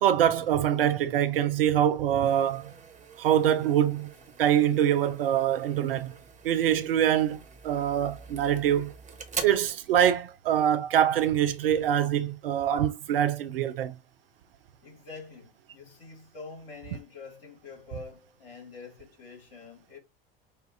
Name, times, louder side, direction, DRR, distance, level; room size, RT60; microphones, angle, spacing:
voice 1, 0.0-2.7 3.2-4.1 4.4-6.1 6.4-8.9 9.4-14.0, right 10 dB, 75° right, 0.7 m, -24 dB
sound 1, 2.2-9.8, right 4 dB, 25° right, 1.5 m, -43 dB
voice 2, 14.8-20.0, left 4 dB, 75° left, 2.9 m, -46 dB
6.8 x 2.6 x 2.7 m
figure-of-eight pair, 75°, 29 cm